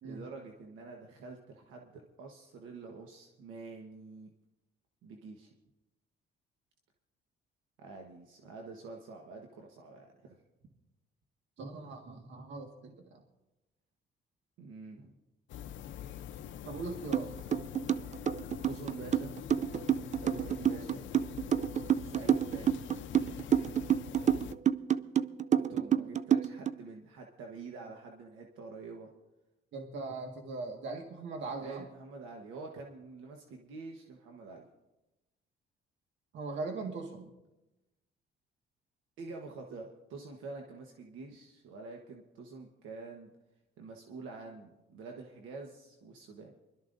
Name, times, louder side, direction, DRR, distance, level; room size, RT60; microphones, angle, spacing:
voice 1, 0.0-4.3 5.0-5.5 7.8-10.4 14.6-15.2 18.6-19.3 20.2-21.0 22.0-22.8 25.5-29.1 31.6-34.7 39.2-43.3 43.8-46.5, right 4 dB, 90° right, 1 dB, 1.3 m, -47 dB
voice 2, 11.6-13.2 16.6-17.3 29.7-31.9 36.3-37.3, right 3 dB, 70° right, 2 dB, 1.7 m, -40 dB
sound 1, 15.5-24.5, left 10 dB, 70° left, 0.7 m, -44 dB
sound 2, 17.1-17.2 17.5-26.7, right 9 dB, 35° right, 0.5 m, -28 dB
24.5 x 12.5 x 2.6 m, 1.0 s
cardioid pair, 90°, 20 cm